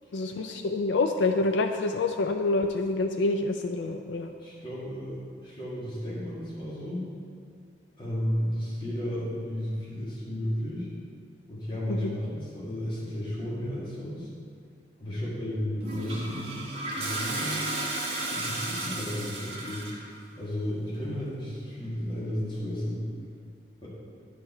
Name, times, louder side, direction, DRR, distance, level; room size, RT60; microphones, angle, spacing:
voice 1, 0.1-4.3 11.9-12.1, left 3 dB, 80° left, 5 dB, 0.4 m, -27 dB
voice 2, 4.4-7.0 8.0-10.9 11.5-14.3 15.0-16.7 16.9-17.7 18.2-19.9 20.4-23.0 23.8-23.9, equal, 25° left, -8 dB, 1.8 m, -33 dB
Toilet flush, 15.8-20.1, right 2 dB, 30° right, 1.2 m, -33 dB
10.0 x 4.7 x 4.3 m, 2.2 s
head